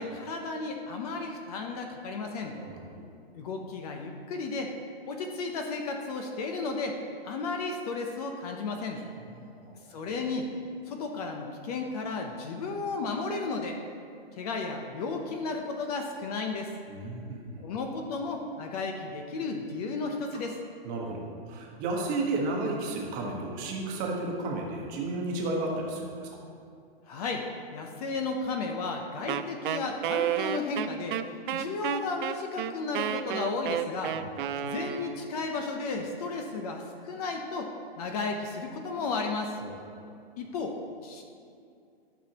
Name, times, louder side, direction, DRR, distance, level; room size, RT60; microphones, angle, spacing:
voice 1, 0.0-2.5 3.3-4.7 5.1-7.0 7.2-9.0 9.9-10.5 10.9-13.8 14.4-16.7 17.6-20.6 27.1-27.5 27.7-31.2 31.5-34.2 34.6-39.6 40.4-41.2, left 3 dB, 40° left, 3 dB, 0.7 m, -33 dB
voice 2, 2.5-2.9 9.0-10.0 16.9-17.6 20.3-20.4 20.8-26.4 34.1-34.2 39.6-39.7, right 2 dB, 25° right, -1 dB, 1.2 m, -33 dB
Wind instrument woodwind instrument, 29.3-35.3, right 10 dB, 55° right, 0.4 m, -31 dB
12.5 x 6.1 x 2.9 m, 2.4 s
hypercardioid pair, 150°, 31 cm